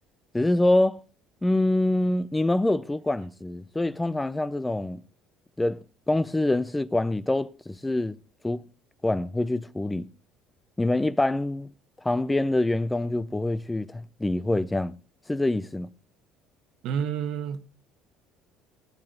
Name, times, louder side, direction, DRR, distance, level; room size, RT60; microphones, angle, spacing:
voice 1, 0.3-1.0 1.4-5.0 5.6-5.8 6.1-8.2 8.4-8.6 9.0-10.1 10.8-11.7 12.0-15.0 15.3-15.9, left 1 dB, 10° left, 0.5 m, -25 dB
voice 2, 16.8-17.7, right 8 dB, 70° right, 1.4 m, -29 dB
18.0 x 8.7 x 3.9 m
supercardioid pair, 95°, 0 cm